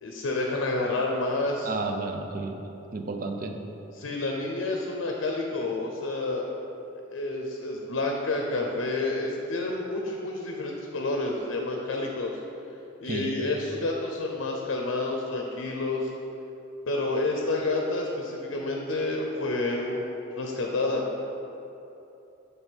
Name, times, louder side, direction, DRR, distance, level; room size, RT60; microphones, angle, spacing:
voice 1, 0.0-1.7 4.0-6.5 7.1-12.4 13.0-16.1 16.9-20.1 20.4-21.1, left 2 dB, 90° left, 0 dB, 0.5 m, -29 dB
voice 2, 1.6-2.6 2.9-3.6 13.0-13.3, right 3 dB, 45° right, 4 dB, 0.4 m, -32 dB
7.0 x 3.4 x 4.4 m, 2.9 s
head